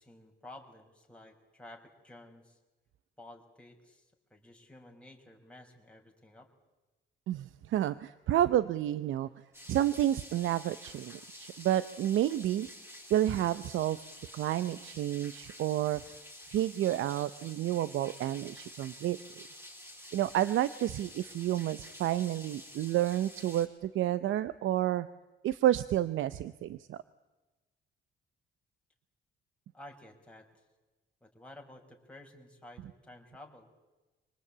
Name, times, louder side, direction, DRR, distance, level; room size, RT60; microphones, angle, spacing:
voice 1, 0.0-2.6 3.2-6.5 29.7-30.6 31.2-33.7, left 1 dB, 5° left, 0 dB, 5.5 m, -53 dB
voice 2, 7.3-9.3 9.7-12.7 13.1-14.0 14.3-16.0 16.5-19.2 20.1-25.1 25.4-27.0, right 12 dB, 80° right, 15 dB, 0.8 m, -30 dB
sound 1, 9.5-23.7, left 1 dB, 10° right, 6.3 m, -50 dB
26.0 x 19.5 x 8.7 m, 1.1 s
cardioid pair, 90°, 20 cm